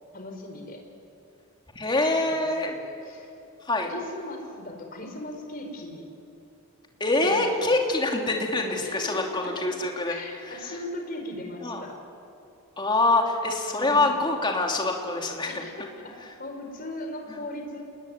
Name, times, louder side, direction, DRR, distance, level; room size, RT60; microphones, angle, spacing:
voice 1, 0.1-0.8 2.0-3.3 3.8-6.1 7.2-7.3 7.6-7.8 8.7-9.6 10.1-12.0 13.7-14.1 15.5-17.8, left 1 dB, 40° left, 3 dB, 4.6 m, -38 dB
voice 2, 1.7-2.7 3.7-3.9 7.0-10.1 11.6-11.8 12.8-15.6, left 2 dB, 20° left, 1 dB, 3.1 m, -25 dB
29.0 x 20.5 x 9.5 m, 2.6 s
head